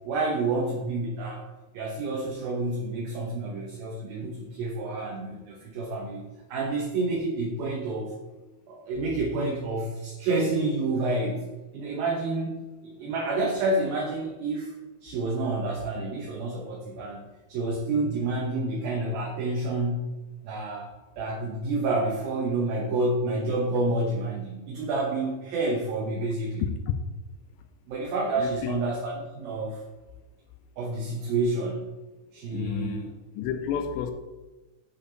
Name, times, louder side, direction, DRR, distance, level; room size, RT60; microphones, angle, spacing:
voice 1, 0.0-1.4 1.7-6.2 6.5-8.1 8.7-11.5 11.7-14.7 15.0-17.2 17.5-20.1 20.4-20.9 21.2-26.7 27.9-29.8 30.8-31.9 32.3-33.1, right 2 dB, 70° right, -2 dB, 2.4 m, -29 dB
voice 2, 26.6-26.9 28.4-28.8 32.5-33.1 33.3-34.1, left 8 dB, 85° left, 7 dB, 2.7 m, -30 dB
12.0 x 5.2 x 3.9 m, 1.2 s
omnidirectional pair, 5.4 m